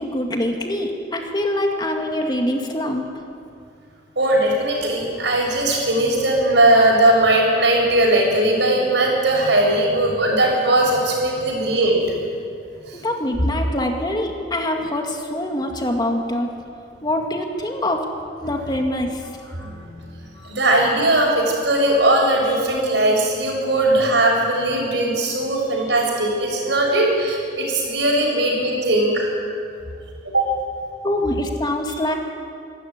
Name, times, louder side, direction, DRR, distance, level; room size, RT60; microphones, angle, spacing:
voice 1, 0.0-3.1 12.9-16.5 17.0-18.1 18.4-19.7 20.4-20.6 28.3-28.4 31.0-32.1, left 1 dB, 25° left, 3 dB, 2.1 m, -24 dB
voice 2, 4.2-12.0 19.6-19.7 20.4-29.3 30.3-30.4, right 1 dB, 75° right, 0 dB, 6.7 m, -19 dB
26.0 x 13.0 x 9.8 m, 2.4 s
head